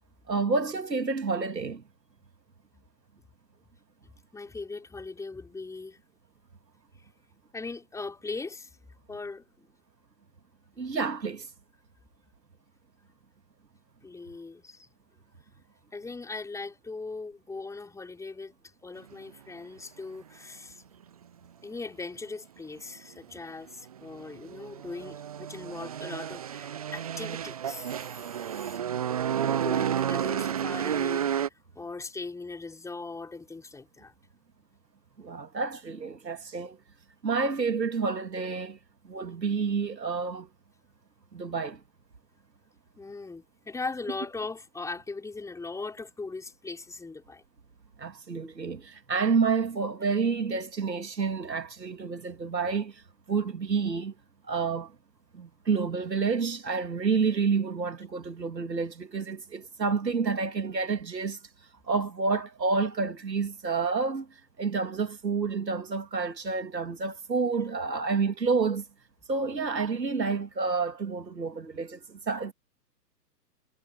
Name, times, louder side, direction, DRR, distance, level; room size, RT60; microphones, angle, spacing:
voice 1, 0.3-1.8 10.8-11.5 35.2-36.8 37.2-38.8 39.0-40.5 41.3-41.8 48.0-53.0 53.3-54.1 54.5-54.9 55.3-61.4 61.9-64.3 64.6-68.8 69.3-72.5, right 4 dB, 80° right, 3.1 m, -29 dB
voice 2, 4.3-6.0 7.5-8.7 9.1-9.7 14.0-14.9 15.9-18.6 18.8-20.8 21.6-28.8 29.3-34.1 43.0-47.4, left 3 dB, 5° left, 5.0 m, -39 dB
sound 1, 23.9-31.5, right 9 dB, 25° right, 0.5 m, -31 dB
figure-of-eight pair, 125°, 50 cm